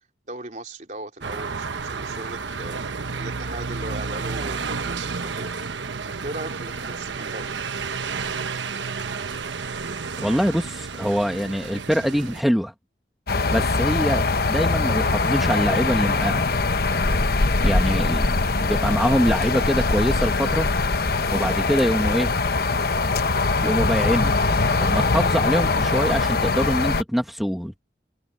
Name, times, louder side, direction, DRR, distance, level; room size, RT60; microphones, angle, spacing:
voice 1, 0.3-2.8 3.1-5.5 6.1-7.5 17.0-17.3, right 2 dB, 40° right, 3.6 m, -37 dB
sound 1, 1.2-12.4, right 5 dB, 85° right, 1.1 m, -31 dB
voice 2, 10.2-12.7 13.5-16.5 17.6-18.3 18.6-20.7 21.3-22.3 23.6-24.4 24.8-27.8, equal, ahead, 1.4 m, -24 dB
sound 2, 13.3-27.0, left 3 dB, 55° left, 0.9 m, -22 dB
head